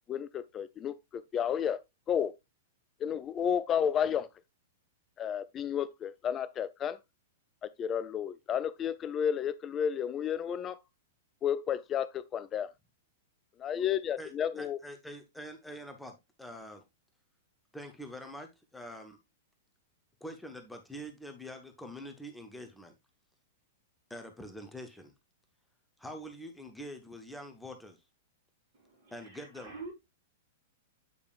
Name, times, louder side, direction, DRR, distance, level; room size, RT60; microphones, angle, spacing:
voice 1, 0.1-1.8 2.1-2.3 3.0-4.3 5.2-7.0 7.8-10.8 11.4-12.7 13.6-14.8, left 8 dB, 25° left, 0.4 m, -32 dB
voice 2, 14.2-16.8 17.7-19.2 20.2-22.9 24.1-25.1 26.0-28.0 29.1-29.7, equal, 5° left, 0.9 m, -45 dB
voice 3, 28.7-29.9, right 3 dB, 60° right, 3.8 m, -47 dB
8.4 x 5.0 x 2.4 m
figure-of-eight pair, 100°, 0 cm